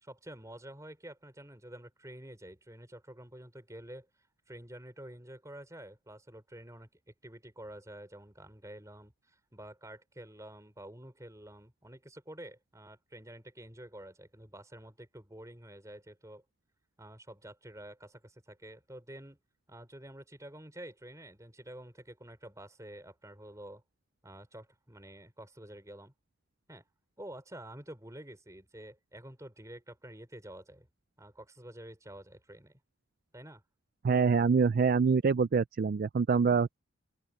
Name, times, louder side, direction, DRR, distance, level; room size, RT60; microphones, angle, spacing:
voice 1, 0.0-4.1 4.5-6.9 7.2-16.4 17.0-19.4 19.7-23.8 24.2-26.1 26.7-26.8 27.2-30.9 31.2-32.8 33.3-33.6, right 1 dB, 15° right, 4.6 m, -49 dB
voice 2, 34.0-36.8, right 5 dB, 45° right, 0.3 m, -25 dB
open air
head